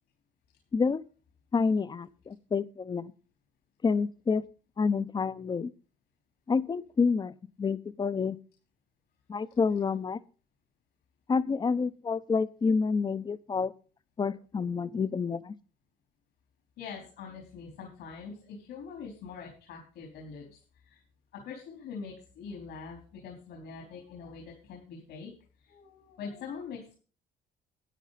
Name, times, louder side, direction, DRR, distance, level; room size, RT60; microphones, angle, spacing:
voice 1, 0.7-1.0 1.5-3.1 3.8-4.4 4.8-5.7 6.5-7.3 7.6-8.4 9.3-10.2 11.3-13.7 14.2-15.5, left 5 dB, 25° left, 0.7 m, -28 dB
voice 2, 16.8-21.0 21.3-25.3 25.6-26.9, left 5 dB, 80° left, 4.2 m, -43 dB
12.5 x 9.9 x 4.2 m
cardioid pair, 110°, 17 cm